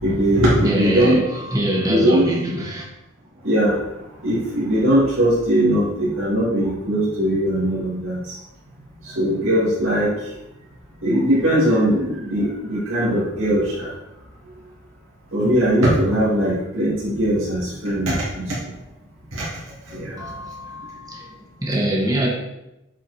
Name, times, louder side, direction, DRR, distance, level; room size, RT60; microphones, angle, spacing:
voice 1, 0.0-1.2 1.9-2.2 3.4-3.8 4.2-8.2 9.2-10.1 11.0-13.9 15.3-18.4 19.3-19.5 19.9-20.2, equal, 70° right, 2.8 m, -20 dB
voice 2, 0.6-2.8 20.2-22.3, right 1 dB, 15° right, 1.4 m, -24 dB
8.2 x 4.8 x 4.3 m
head